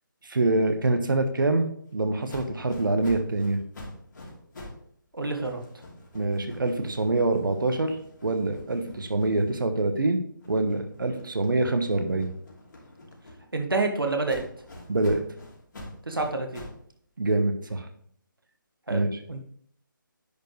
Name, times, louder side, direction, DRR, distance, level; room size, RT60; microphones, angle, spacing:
voice 1, 0.2-1.7 1.9-3.6 6.1-8.0 8.2-10.2 10.5-12.3 14.9-15.2 17.2-17.9 18.9-19.1, right 2 dB, 70° right, 7 dB, 1.3 m, -25 dB
sound 1, 2.3-4.9 5.2-9.9 10.4-13.7 14.3-16.9, left 1 dB, 65° left, 2.8 m, -46 dB
voice 2, 5.1-5.6 13.5-14.4 16.0-16.6 18.9-19.4, right 3 dB, 90° right, 4 dB, 1.6 m, -28 dB
10.0 x 4.7 x 3.2 m, 0.64 s
figure-of-eight pair, 155°, 11 cm